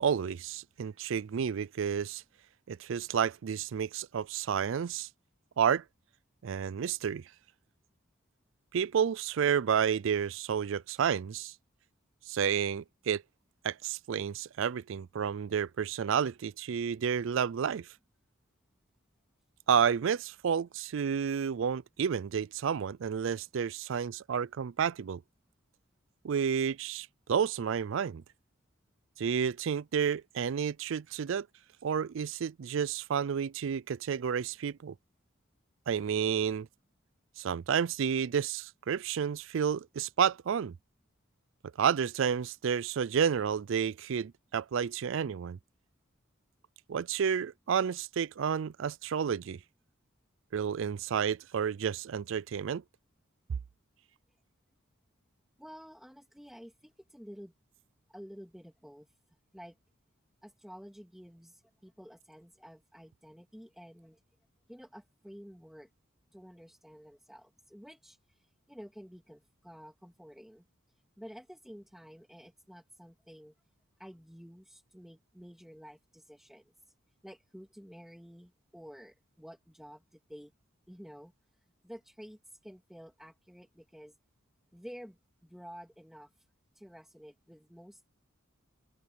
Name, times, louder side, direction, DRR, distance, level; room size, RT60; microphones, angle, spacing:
voice 1, 0.0-2.2 2.7-5.1 5.6-5.8 6.4-7.2 8.7-11.5 12.3-13.2 13.6-17.9 19.7-25.2 26.2-28.2 29.2-31.5 31.8-34.9 35.9-36.7 37.4-40.7 41.8-45.6 46.9-49.6 50.5-52.8, right 7 dB, 65° right, 0.4 m, -30 dB
voice 2, 55.6-57.5 58.1-59.1 59.5-59.8 60.4-64.2 64.7-65.9 66.3-70.6 71.2-73.5 74.0-76.6 77.2-80.5 80.9-81.3 81.8-84.1 84.7-86.3 86.7-88.1, equal, ahead, 2.5 m, -51 dB
open air
head